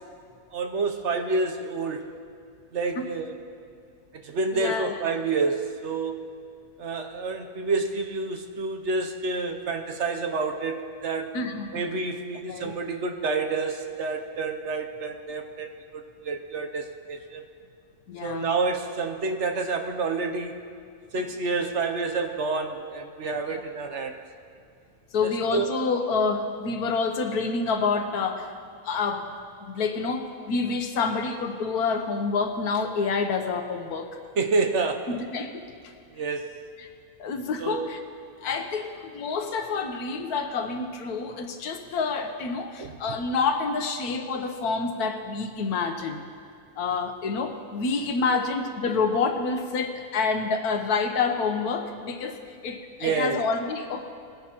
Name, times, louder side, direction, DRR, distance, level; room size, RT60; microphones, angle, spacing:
voice 1, 0.5-2.1 2.7-3.3 4.2-6.2 6.8-11.3 11.7-17.4 18.2-20.6 21.1-24.2 25.2-25.7 34.4-35.2 36.1-36.5 37.6-37.9 42.8-42.9 48.3-48.4 53.0-53.4, right 4 dB, 60° right, 4 dB, 1.0 m, -28 dB
voice 2, 4.5-5.0 11.3-11.8 12.5-12.7 18.1-18.5 23.5-23.6 25.1-28.5 28.8-29.3 29.6-34.1 35.1-35.6 36.8-36.9 37.2-38.0 38.4-46.2 46.8-54.1, left 4 dB, 90° left, 6 dB, 1.4 m, -28 dB
20.0 x 10.5 x 3.0 m, 2.3 s
omnidirectional pair, 1.6 m